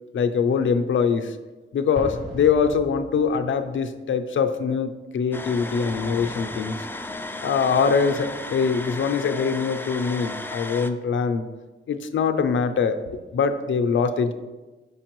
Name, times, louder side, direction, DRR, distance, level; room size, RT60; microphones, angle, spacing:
voice 1, 0.1-1.4 1.7-6.8 7.4-11.5 11.9-13.0 13.3-14.3, left 6 dB, 70° left, 8 dB, 0.5 m, -23 dB
Explosion, 1.9-3.7, left 1 dB, 65° right, 1.8 m, -38 dB
sound 1, 5.3-10.9, left 2 dB, 10° left, 0.3 m, -34 dB
6.4 x 5.2 x 3.0 m, 1.2 s
cardioid pair, 90°, 20 cm